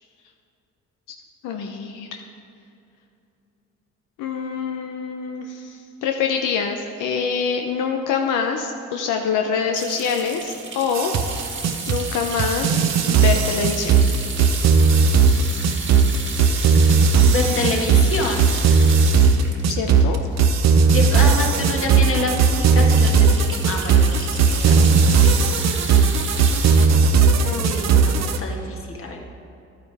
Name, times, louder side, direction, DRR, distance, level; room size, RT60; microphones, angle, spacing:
voice 1, 1.4-2.2 4.2-11.1 11.9-13.9 19.7-20.2, left 6 dB, 90° left, 3 dB, 0.7 m, -25 dB
sound 1, 9.7-21.0 21.5-21.6 21.9-22.0 22.4-26.9, right 4 dB, 40° right, 1.6 m, -33 dB
sound 2, 10.9-28.4, right 5 dB, 60° right, 0.8 m, -16 dB
voice 2, 16.9-18.5 20.9-25.3 27.3-29.2, left 2 dB, 45° left, 0 dB, 1.8 m, -27 dB
12.0 x 9.6 x 3.5 m, 2.7 s
cardioid pair, 90°, 30 cm